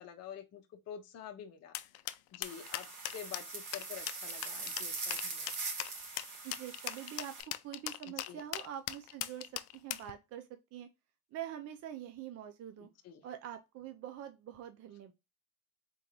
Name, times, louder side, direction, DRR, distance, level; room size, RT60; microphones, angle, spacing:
voice 1, 0.0-1.7 2.3-5.6 8.3-8.4 13.0-13.2, left 9 dB, 35° left, 0.8 m, -48 dB
sound 1, 1.7-10.1, left 16 dB, 60° left, 0.5 m, -39 dB
sound 2, 2.4-7.4, right 3 dB, 90° right, 2.1 m, -42 dB
voice 2, 6.4-7.3 7.6-10.9 11.3-12.9 13.2-15.1, right 10 dB, 35° right, 0.5 m, -45 dB
3.7 x 3.7 x 3.0 m
supercardioid pair, 100°, 43 cm